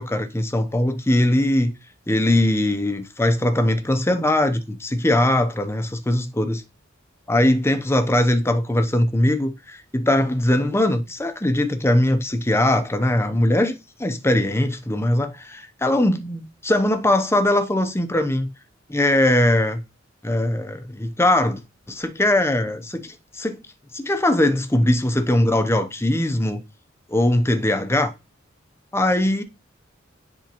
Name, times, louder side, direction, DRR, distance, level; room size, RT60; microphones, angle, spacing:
voice 1, 0.0-1.7 2.1-6.6 7.3-13.7 14.0-18.5 18.9-19.8 20.2-21.6 21.9-23.6 23.9-26.6 27.1-28.1 28.9-29.4, left 1 dB, 15° left, 0.7 m, -20 dB
10.0 x 3.6 x 3.0 m
head